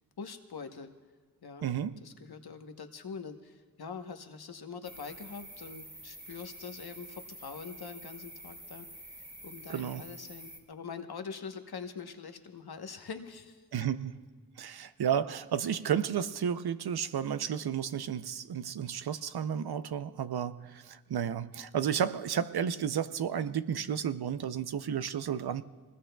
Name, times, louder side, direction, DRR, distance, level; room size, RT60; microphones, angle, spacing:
voice 1, 0.2-0.9 1.4-1.7 2.0-8.9 9.4-13.6 14.8-14.9, left 5 dB, 85° left, 6 dB, 1.0 m, -44 dB
voice 2, 1.6-2.0 9.7-10.0 13.7-14.1 14.6-25.6, right 8 dB, 90° right, 12 dB, 0.6 m, -32 dB
sound 1, 4.8-10.6, right 1 dB, 30° right, 2.7 m, -48 dB
24.5 x 20.5 x 2.3 m, 1.5 s
cardioid pair, 40°, 37 cm